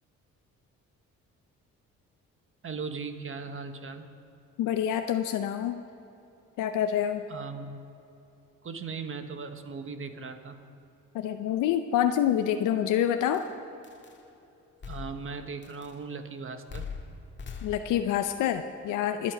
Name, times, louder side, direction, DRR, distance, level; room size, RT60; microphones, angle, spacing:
voice 1, 2.6-4.1 7.3-7.8 8.6-10.6 14.9-16.9, right 5 dB, 45° right, 7 dB, 1.3 m, -38 dB
voice 2, 4.6-5.8 6.6-7.2 11.1-13.4 17.6-19.3, left 10 dB, 90° left, 7 dB, 0.7 m, -27 dB
sound 1, 12.4-12.5 13.3-13.5 13.8-14.2 14.8-15.4 15.6-16.0 16.7-18.2, left 5 dB, 40° left, 1.8 m, -41 dB
24.0 x 9.0 x 5.1 m, 2.9 s
cardioid pair, 90°, 30 cm